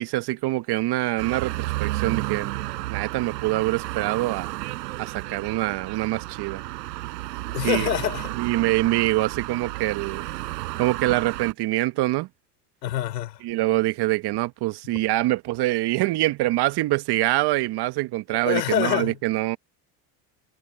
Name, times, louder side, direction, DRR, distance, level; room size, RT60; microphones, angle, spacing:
voice 1, 0.0-2.5 2.9-4.5 5.0-6.6 7.6-7.9 8.4-10.2 10.8-12.3 13.4-19.6, right 18 dB, 55° right, 1.3 m, -24 dB
sound 1, 1.2-11.5, right 19 dB, 80° right, 6.4 m, -32 dB
voice 2, 7.5-8.3 12.8-13.4 18.4-19.2, left 12 dB, 90° left, 4.4 m, -25 dB
hypercardioid pair, 80°, 48 cm